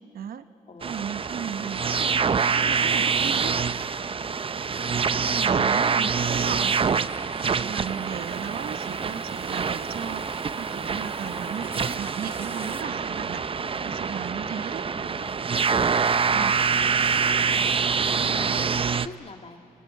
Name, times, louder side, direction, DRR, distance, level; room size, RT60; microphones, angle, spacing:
voice 1, 0.1-0.4 0.8-3.6 5.2-14.9 16.3-16.6, right 8 dB, 70° right, 11 dB, 0.9 m, -36 dB
voice 2, 0.7-1.4 4.7-5.5 15.0-15.4 16.3-19.6, left 4 dB, 40° left, 5 dB, 1.9 m, -45 dB
sound 1, 0.8-19.1, right 5 dB, 35° right, 0.6 m, -25 dB
sound 2, 6.6-12.8, right 2 dB, 15° right, 1.0 m, -46 dB
sound 3, 8.7-16.1, left 1 dB, 15° left, 3.1 m, -50 dB
29.0 x 19.5 x 8.3 m, 2.7 s
cardioid pair, 75°, 16 cm